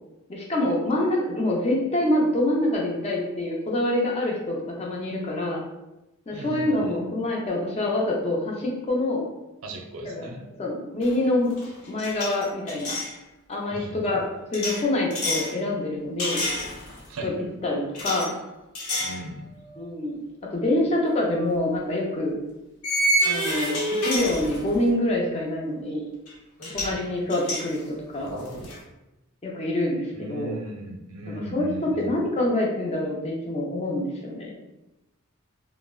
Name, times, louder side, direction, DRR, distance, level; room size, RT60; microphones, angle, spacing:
voice 1, 0.3-5.6 6.3-9.2 10.0-11.5 11.9-13.0 13.5-14.2 14.5-16.4 17.2-17.3 17.6-18.3 19.8-20.2 20.5-22.4 23.3-26.1 26.7-28.4 29.4-30.6 31.3-34.5, left 1 dB, 30° left, -2 dB, 0.5 m, -26 dB
voice 2, 6.3-7.0 9.6-10.4 13.7-14.2 17.1-17.3 19.0-19.5 26.9-27.1 30.1-32.2, right 1 dB, 70° right, 3 dB, 0.5 m, -37 dB
sound 1, 11.0-11.2 11.5-13.1 14.5-15.5 16.2-17.1 17.9-18.3 18.7-19.2 19.7-19.8 21.3-21.5 22.8-24.9 26.3-26.4 26.6-27.0 27.3-28.8, equal, 80° left, 0.9 m, -28 dB
3.3 x 2.0 x 2.3 m, 0.95 s
head